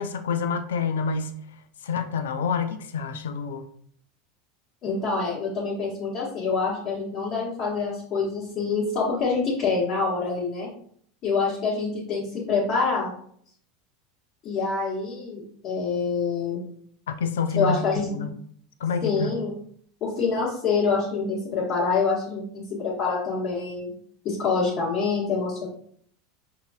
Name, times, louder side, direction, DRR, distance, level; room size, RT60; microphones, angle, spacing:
voice 1, 0.0-1.4 1.8-3.7 17.1-17.8 18.1-18.3 18.8-19.4, left 5 dB, 80° left, 9 dB, 0.4 m, -27 dB
voice 2, 4.8-10.7 11.2-13.1 14.4-16.6 17.5-18.1 19.0-19.5 20.0-23.9 24.2-25.7, left 4 dB, 45° left, -7 dB, 1.3 m, -26 dB
5.3 x 2.7 x 2.4 m, 0.62 s
hypercardioid pair, 90°, 0 cm